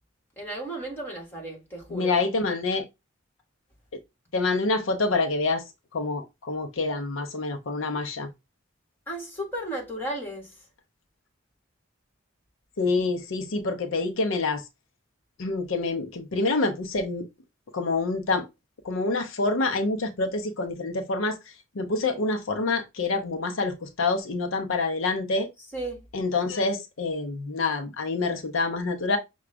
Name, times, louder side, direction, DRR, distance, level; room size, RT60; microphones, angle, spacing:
voice 1, 0.4-2.2 9.1-10.6 25.7-26.1, right 1 dB, 10° left, 1.6 m, -34 dB
voice 2, 1.9-2.8 4.3-5.6 5.9-8.3 12.8-14.6 15.4-17.3 17.7-18.5 18.8-21.4 21.8-25.5 26.1-29.2, left 3 dB, 75° left, 0.6 m, -27 dB
5.9 x 2.3 x 3.3 m
head